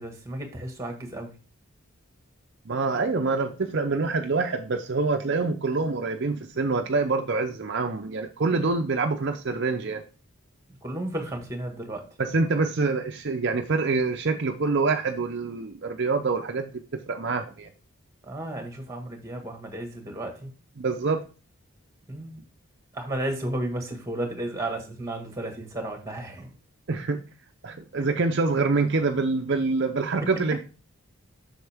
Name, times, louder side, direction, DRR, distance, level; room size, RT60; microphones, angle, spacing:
voice 1, 0.0-1.3 10.8-12.0 18.3-20.5 22.1-22.3 22.9-26.5, right 1 dB, 15° right, 4 dB, 1.6 m, -33 dB
voice 2, 2.7-10.0 12.2-17.7 20.8-21.2 26.9-27.2 27.6-30.6, right 3 dB, 50° right, 5 dB, 0.6 m, -26 dB
8.0 x 6.3 x 3.4 m, 0.33 s
head